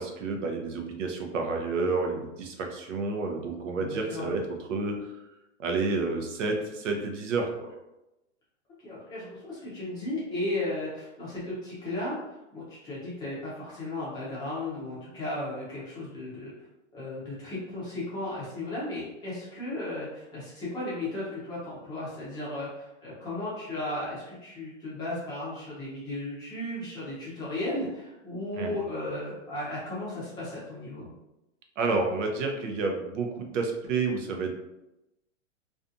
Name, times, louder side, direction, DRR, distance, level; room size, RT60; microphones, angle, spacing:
voice 1, 0.0-5.1 5.6-7.7 28.6-28.8 31.8-34.6, right 3 dB, 80° right, 3 dB, 0.7 m, -30 dB
voice 2, 3.8-4.3 8.8-12.2 12.5-16.5 16.9-31.1, left 1 dB, 10° left, -8 dB, 0.5 m, -35 dB
2.5 x 2.3 x 2.5 m, 0.94 s
supercardioid pair, 155°, 37 cm